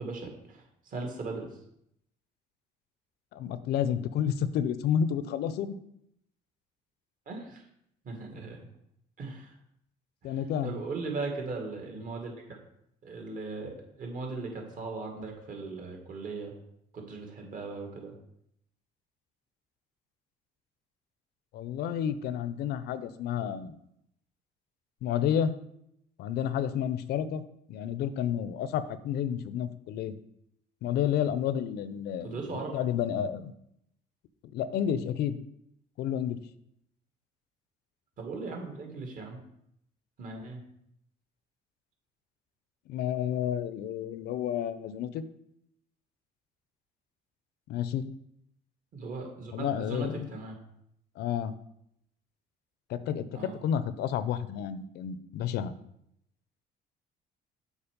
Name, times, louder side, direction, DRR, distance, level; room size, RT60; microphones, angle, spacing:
voice 1, 0.0-1.5 7.3-7.6 8.0-8.7 9.2-9.5 10.2-10.3 10.6-12.3 13.0-16.5 16.9-18.1 32.2-32.7 38.2-39.4 40.2-40.6 48.9-50.6 53.3-53.6, right 3 dB, 55° right, 2 dB, 2.1 m, -38 dB
voice 2, 3.3-5.8 10.2-10.7 21.5-23.8 25.0-25.5 26.2-27.4 27.7-30.1 30.8-33.5 34.5-35.4 36.0-36.4 42.9-45.2 47.7-48.1 49.5-50.3 51.2-51.5 52.9-55.7, left 9 dB, 75° left, 13 dB, 0.6 m, -30 dB
7.2 x 4.6 x 5.2 m, 0.76 s
cardioid pair, 110°, 17 cm